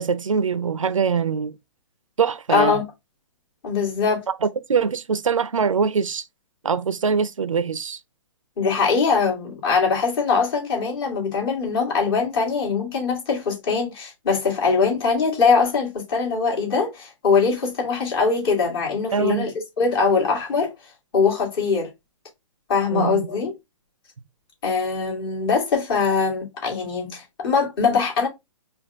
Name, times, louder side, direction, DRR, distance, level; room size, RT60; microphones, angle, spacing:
voice 1, 0.0-1.5 2.2-2.8 4.3-6.2 6.6-8.0 19.1-19.5 22.9-23.2, right 6 dB, 85° right, 0.5 m, -23 dB
voice 2, 2.5-2.8 3.6-4.2 8.6-19.5 19.8-20.7 21.1-21.9 22.7-23.5 24.6-28.3, left 5 dB, 45° left, 2.4 m, -22 dB
5.2 x 2.4 x 3.4 m
hypercardioid pair, 130°, 17 cm